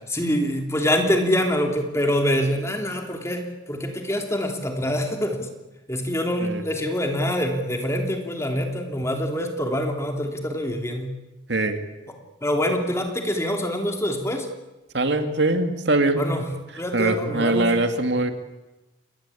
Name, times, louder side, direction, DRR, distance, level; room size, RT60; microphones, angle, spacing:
voice 1, 0.1-5.5 5.9-11.1 12.4-14.5 16.2-16.5 16.8-17.7, equal, 15° left, 3 dB, 3.2 m, -25 dB
voice 2, 11.5-11.8 14.9-16.3 16.7-18.3, right 2 dB, 65° right, 7 dB, 2.4 m, -22 dB
28.5 x 21.5 x 8.6 m, 1.1 s
head